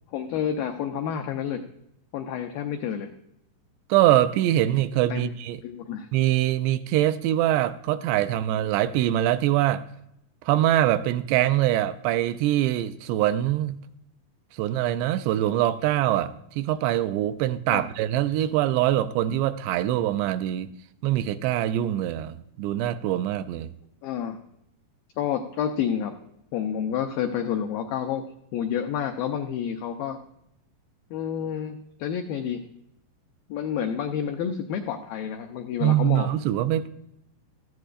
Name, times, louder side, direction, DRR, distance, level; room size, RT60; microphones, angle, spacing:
voice 1, 0.1-1.6 2.1-3.1 5.1-5.3 5.6-6.1 17.7-17.8 24.0-24.4 25.2-26.1 26.5-28.2 28.5-30.2 31.1-32.6 33.5-36.4, left 8 dB, 90° left, 5 dB, 2.0 m, -29 dB
voice 2, 3.9-5.6 6.1-9.8 10.5-13.8 14.6-20.7 21.0-23.7 35.8-36.9, right 13 dB, 85° right, 11 dB, 2.6 m, -23 dB
17.0 x 14.0 x 2.5 m, 0.80 s
omnidirectional pair, 4.9 m